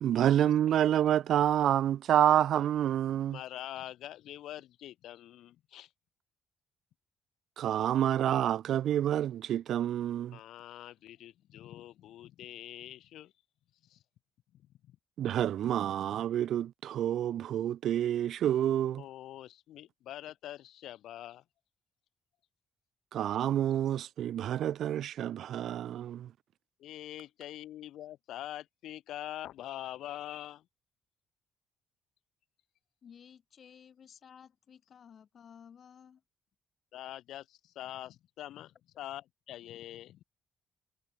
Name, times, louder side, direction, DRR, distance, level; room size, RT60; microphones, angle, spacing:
voice 1, 0.0-3.4 7.6-10.4 15.2-19.0 23.1-26.3, right 11 dB, 70° right, 0.8 m, -28 dB
voice 2, 3.1-5.9 10.3-13.3 13.8-14.0 14.5-15.0 19.0-21.4 26.8-30.6 36.9-40.2, left 13 dB, 80° left, 2.0 m, -44 dB
voice 3, 33.0-36.2, left 7 dB, 55° left, 5.5 m, -55 dB
cardioid pair, 90°, 0 cm